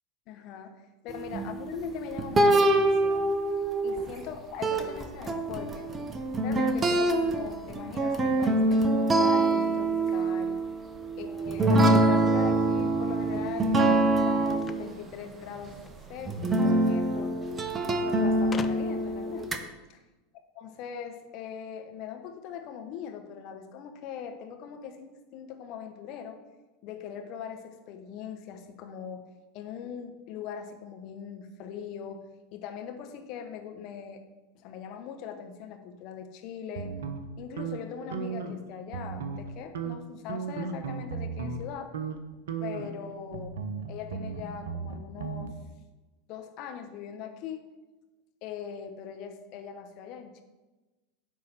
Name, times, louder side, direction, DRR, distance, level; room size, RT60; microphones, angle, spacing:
voice 1, 0.3-0.7 1.0-3.3 3.8-5.9 6.4-10.6 11.2-15.8 16.1-17.4 17.8-19.6 19.9-20.0 20.6-26.4 26.8-29.2 29.5-32.2 32.5-34.2 34.5-36.9 37.4-41.9 42.6-43.6 43.9-45.5 46.3-47.6 48.4-50.4, left 8 dB, 50° left, 6 dB, 1.1 m, -41 dB
sound 1, 1.1-4.4 4.6-14.9 15.7-15.8 16.3-19.6, right 2 dB, 20° right, 0.9 m, -25 dB
sound 2, 14.6-16.0 17.1-17.2 17.4-17.5 18.5-19.2, left 5 dB, 20° left, 0.5 m, -41 dB
sound 3, 36.7-38.6 38.9-39.5 39.7-41.6 41.9-42.2 42.5-45.5, right 5 dB, 65° right, 0.8 m, -36 dB
9.8 x 3.8 x 6.2 m, 1.1 s
figure-of-eight pair, 85°, 0 cm